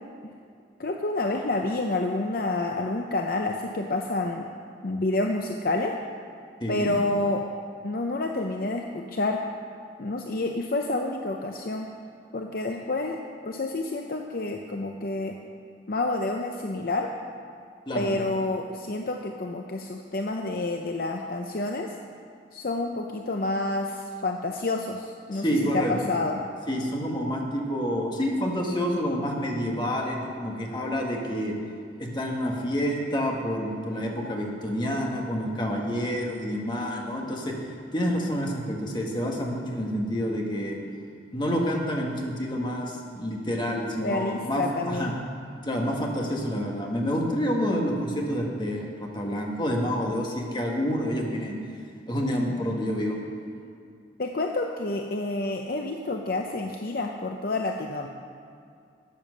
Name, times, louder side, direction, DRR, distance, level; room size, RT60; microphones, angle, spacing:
voice 1, 0.8-4.5 4.8-6.0 6.7-7.5 7.8-9.4 10.0-11.9 12.3-15.4 15.9-17.1 17.9-21.9 22.5-25.4 25.7-26.4 44.0-45.1 54.2-58.1, left 2 dB, 50° left, 3 dB, 0.6 m, -29 dB
voice 2, 6.6-6.9 17.9-18.1 25.3-25.9 26.7-31.5 32.0-37.5 37.9-40.8 41.3-45.1 45.6-51.5 52.1-53.2, equal, 25° left, -1 dB, 1.7 m, -28 dB
12.5 x 9.0 x 6.5 m, 2.4 s
head